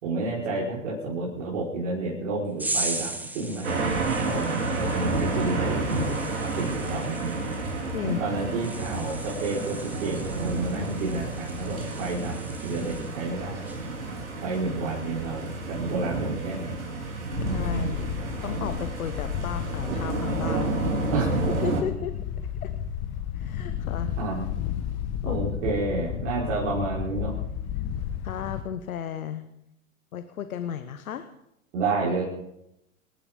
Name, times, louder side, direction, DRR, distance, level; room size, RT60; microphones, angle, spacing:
voice 1, 0.0-3.9 4.2-7.2 8.0-12.4 12.6-13.7 14.4-16.8 21.1-21.3 24.2-24.5 25.2-27.3 31.7-32.2, right 3 dB, 55° right, -5 dB, 5.2 m, -30 dB
sound 1, 2.6-13.3 13.6-14.0, right 2 dB, 5° right, 1.0 m, -38 dB
sound 2, 3.6-21.8, right 3 dB, 70° right, 4.7 m, -30 dB
Wind, 17.3-28.6, left 9 dB, 35° left, 1.6 m, -32 dB
voice 2, 17.5-18.1 18.4-21.1 21.6-22.1 22.6-22.7 23.3-24.2 25.2-25.4 28.2-29.4 30.1-31.3, left 9 dB, 70° left, 10 dB, 1.2 m, -34 dB
27.0 x 12.0 x 3.9 m, 0.82 s
hypercardioid pair, 110°, 43 cm